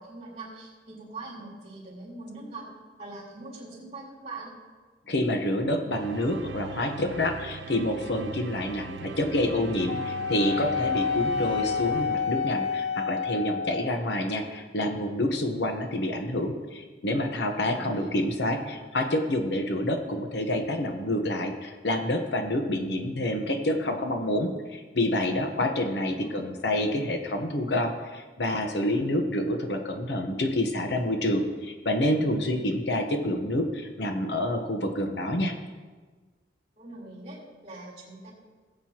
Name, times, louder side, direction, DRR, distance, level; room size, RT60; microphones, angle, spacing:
voice 1, 0.0-2.7 3.0-4.5 17.6-18.1 26.1-26.5 36.8-38.3, right 2 dB, 35° right, -4 dB, 3.9 m, -42 dB
voice 2, 5.1-35.5, left 1 dB, 70° left, 5 dB, 1.0 m, -28 dB
sound 1, 5.9-13.0, right 5 dB, 75° right, 0.4 m, -40 dB
Wind instrument woodwind instrument, 9.9-14.0, left 6 dB, 40° left, 0.6 m, -29 dB
18.5 x 7.8 x 2.9 m, 1.4 s
head